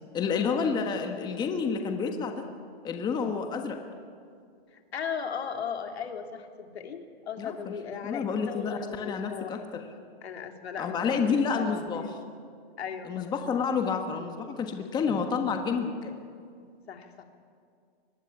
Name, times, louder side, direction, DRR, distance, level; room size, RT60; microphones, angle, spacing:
voice 1, 0.1-2.5 2.8-3.8 7.4-7.7 8.0-9.9 10.8-12.0 13.0-16.1, left 5 dB, 15° left, 5 dB, 1.4 m, -29 dB
voice 2, 4.9-9.6 10.2-12.2 12.8-13.3 16.9-17.2, left 7 dB, 85° left, 4 dB, 2.9 m, -37 dB
23.5 x 19.0 x 9.9 m, 2.3 s
hypercardioid pair, 160°, 31 cm